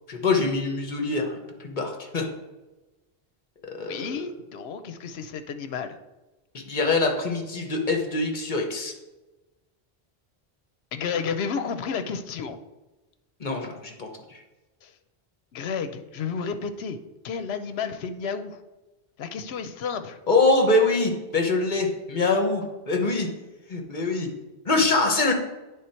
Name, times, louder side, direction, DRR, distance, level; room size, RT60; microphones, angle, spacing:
voice 1, 0.1-2.3 3.6-4.2 6.5-8.9 13.4-14.4 20.3-23.3 23.7-24.3 24.6-25.3, left 3 dB, 50° left, 3 dB, 1.0 m, -24 dB
voice 2, 3.8-6.0 10.9-12.6 14.8-14.9 15.5-17.0 17.2-18.6 19.2-20.2, left 6 dB, 75° left, 9 dB, 0.9 m, -31 dB
9.4 x 3.4 x 4.4 m, 1.1 s
omnidirectional pair, 1.1 m